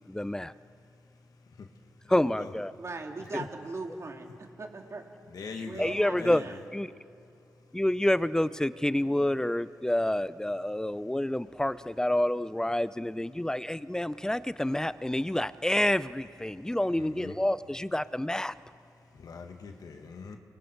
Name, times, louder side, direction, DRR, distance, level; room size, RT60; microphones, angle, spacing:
voice 1, 0.1-0.5 2.1-2.7 3.3-3.4 5.6-6.4 6.7-6.9 7.7-18.5, left 1 dB, 10° left, 15 dB, 0.6 m, -28 dB
voice 2, 2.8-5.0 5.6-6.6, right 3 dB, 45° right, 2 dB, 2.7 m, -39 dB
voice 3, 5.3-6.5 17.0-17.3 19.2-20.4, left 5 dB, 70° left, 4 dB, 2.0 m, -42 dB
29.0 x 23.5 x 4.7 m, 2.7 s
cardioid pair, 60°, 7 cm